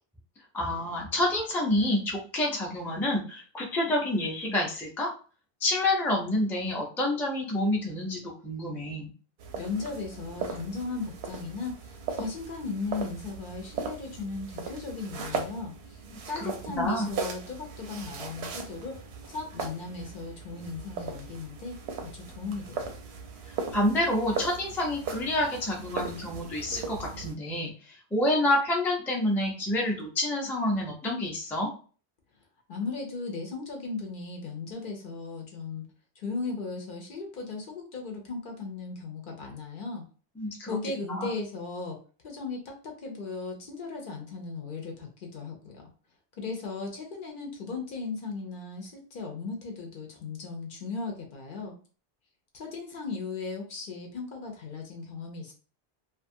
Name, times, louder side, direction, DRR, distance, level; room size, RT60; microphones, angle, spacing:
voice 1, 0.5-5.1 5.6-9.1 16.4-17.1 23.7-31.7 40.4-40.8 41.1-41.3, left 1 dB, 5° left, -2 dB, 0.4 m, -28 dB
sound 1, 9.4-27.3, right 5 dB, 80° right, 0.8 m, -38 dB
voice 2, 9.5-16.0 16.3-22.9 32.7-35.8 36.2-40.0 40.7-42.0 42.2-45.9 46.4-51.7 52.5-55.5, left 4 dB, 60° left, 2 dB, 0.7 m, -37 dB
2.5 x 2.3 x 2.6 m, 0.38 s
omnidirectional pair, 1.1 m